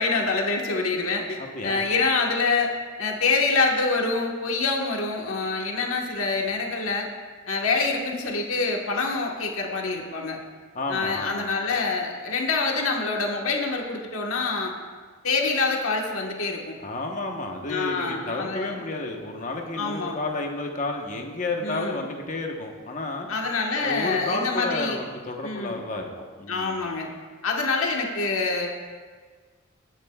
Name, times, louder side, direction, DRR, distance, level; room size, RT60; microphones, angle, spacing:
voice 1, 0.0-1.4 1.6-7.1 7.5-10.4 10.9-14.7 15.2-16.7 17.7-18.7 19.8-20.2 21.6-22.0 23.3-25.0 25.4-25.8 26.5-27.1 27.4-28.7, left 3 dB, 75° left, 0 dB, 1.4 m, -26 dB
voice 2, 1.4-1.8 10.7-11.5 16.8-23.3 23.8-26.8, left 2 dB, 35° left, 2 dB, 1.1 m, -31 dB
19.0 x 9.0 x 2.4 m, 1.5 s
head